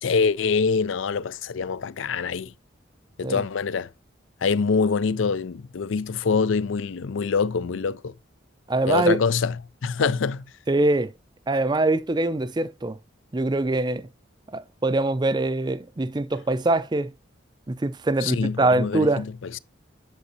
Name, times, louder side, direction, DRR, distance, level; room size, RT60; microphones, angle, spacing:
voice 1, 0.0-2.5 3.2-3.9 4.4-8.1 8.9-9.5 9.8-10.4 18.2-19.6, left 5 dB, 75° left, 0.5 m, -25 dB
voice 2, 8.7-9.2 10.0-10.1 10.7-11.1 11.5-13.0 13.3-14.1 14.5-17.1 17.7-19.2, right 2 dB, 20° right, 0.4 m, -23 dB
9.7 x 6.9 x 2.7 m
head